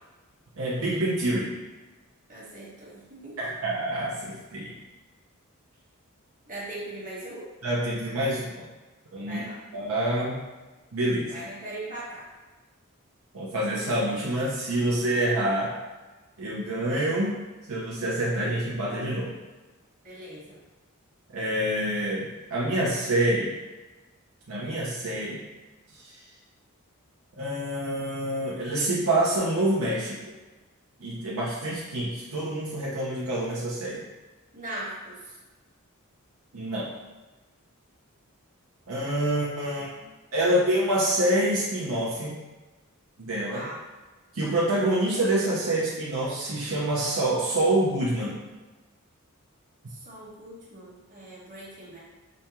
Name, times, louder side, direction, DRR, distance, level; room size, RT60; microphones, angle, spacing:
voice 1, 0.6-1.5 3.4-4.8 7.6-8.7 9.1-9.4 9.7-10.4 10.9-11.3 13.3-15.7 16.4-17.4 17.7-19.4 21.3-23.6 24.5-25.4 25.9-26.2 27.4-30.2 31.0-34.0 36.5-36.9 38.9-39.9 40.3-42.4 43.2-43.7 44.3-48.4, right 1 dB, 70° right, -6 dB, 0.7 m, -27 dB
voice 2, 2.3-3.5 6.5-7.5 9.2-9.6 11.3-12.3 20.0-20.6 34.5-35.4 39.6-40.1 43.5-43.8 49.9-52.0, right 1 dB, 40° right, -7 dB, 1.3 m, -40 dB
5.0 x 2.3 x 2.9 m, 1.2 s
head